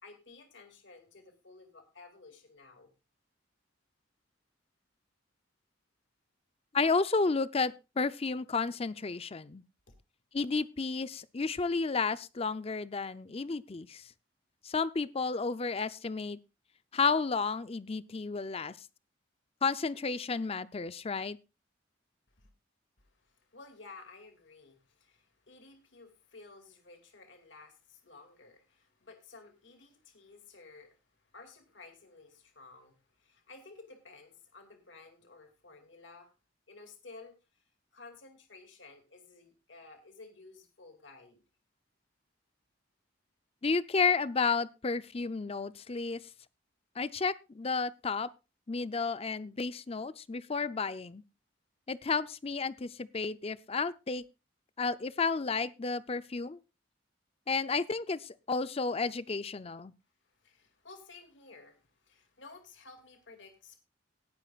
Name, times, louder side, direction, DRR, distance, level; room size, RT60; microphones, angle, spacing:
voice 1, 0.0-2.9 9.9-10.0 22.4-22.5 23.0-36.3 36.7-37.6 37.9-41.4 60.3-63.8, left 3 dB, 70° left, 6 dB, 2.3 m, -54 dB
voice 2, 6.7-9.6 10.3-14.0 14.6-16.4 16.9-18.7 19.6-21.4 43.6-46.2 47.0-48.3 48.7-51.2 51.9-54.2 54.8-56.6 57.5-59.9, left 4 dB, 30° left, 15 dB, 0.5 m, -32 dB
18.5 x 9.7 x 2.4 m, 0.28 s
head